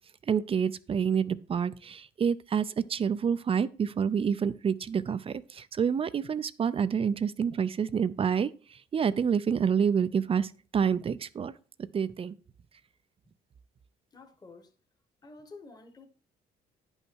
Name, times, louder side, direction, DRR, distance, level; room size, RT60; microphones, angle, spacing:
voice 1, 0.3-11.5 11.9-12.4, right 7 dB, 35° right, 0.4 m, -28 dB
voice 2, 14.1-14.7 15.2-16.1, left 3 dB, 25° left, 1.1 m, -50 dB
10.5 x 5.5 x 4.5 m
cardioid pair, 120°, 17 cm